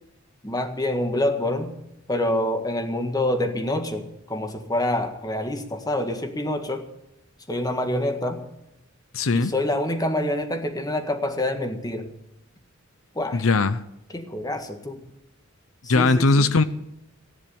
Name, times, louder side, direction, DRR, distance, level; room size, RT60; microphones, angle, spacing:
voice 1, 0.4-1.8 2.1-6.9 7.5-8.4 9.3-12.2 13.1-13.5 14.1-15.0 15.8-16.5, left 1 dB, 20° left, 6 dB, 1.7 m, -26 dB
voice 2, 9.1-9.5 13.3-13.8 15.9-16.6, left 3 dB, 90° left, 14 dB, 0.7 m, -19 dB
15.5 x 10.5 x 8.6 m, 0.84 s
head